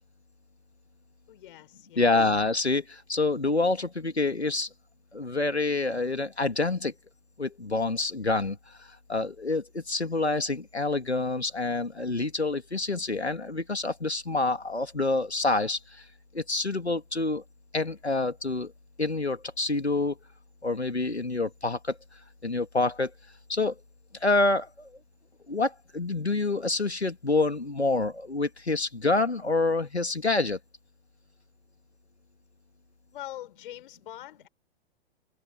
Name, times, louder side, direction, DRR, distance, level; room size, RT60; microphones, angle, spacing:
voice 1, 1.3-2.1 33.1-34.5, left 13 dB, 55° left, 5.1 m, -43 dB
voice 2, 2.0-4.7 5.1-6.9 7.4-16.0 16.3-17.4 17.7-18.7 19.0-20.2 20.6-22.0 22.4-23.1 23.5-23.7 24.2-24.9 25.5-30.6, left 3 dB, 90° left, 2.6 m, -27 dB
figure-of-eight pair, 105°, 32 cm